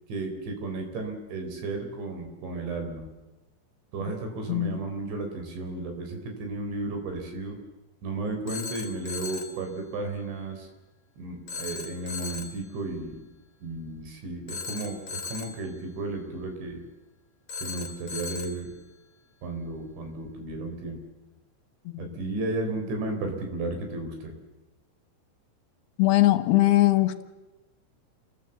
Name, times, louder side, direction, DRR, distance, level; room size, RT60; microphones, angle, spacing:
voice 1, 0.1-3.1 3.9-7.6 8.0-10.7 11.2-13.3 13.6-16.8 17.6-18.7 19.4-21.0 22.0-24.3, right 2 dB, 75° right, 4 dB, 6.5 m, -34 dB
voice 2, 4.5-4.8 21.9-22.2 26.0-27.2, left 16 dB, 70° left, 10 dB, 2.9 m, -21 dB
Telephone, 8.5-9.6 11.5-12.6 14.5-15.7 17.5-18.7, left 4 dB, 45° left, 2.5 m, -37 dB
28.5 x 19.5 x 8.1 m, 1.1 s
omnidirectional pair, 5.4 m